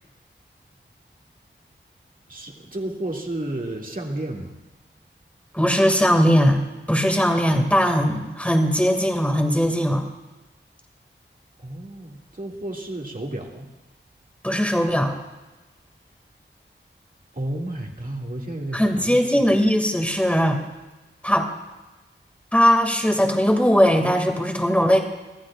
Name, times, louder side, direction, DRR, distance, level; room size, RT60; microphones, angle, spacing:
voice 1, 2.3-4.6 11.6-13.7 17.3-19.4, right 1 dB, 45° right, 0 dB, 2.2 m, -32 dB
voice 2, 5.5-6.6 6.9-10.0 14.4-15.2 18.7-20.6 21.2-21.5 22.5-25.0, equal, 5° left, 3 dB, 2.1 m, -19 dB
24.5 x 14.5 x 2.4 m, 1.1 s
wide cardioid pair, 70°, 20 cm